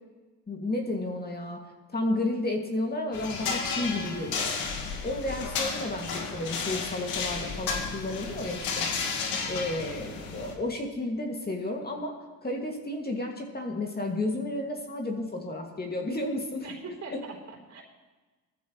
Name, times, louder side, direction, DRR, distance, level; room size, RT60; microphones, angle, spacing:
voice 1, 0.5-1.6 1.9-4.5 5.0-8.9 9.5-12.2 12.4-16.7 17.1-17.2, left 2 dB, 25° left, 0 dB, 2.3 m, -32 dB
sound 1, 3.1-10.5, left 5 dB, 80° left, 2.0 m, -33 dB
voice 2, 9.3-9.6 16.6-17.8, right 3 dB, 50° right, 0 dB, 3.9 m, -42 dB
18.0 x 14.0 x 3.2 m, 1.3 s
supercardioid pair, 75°, 35 cm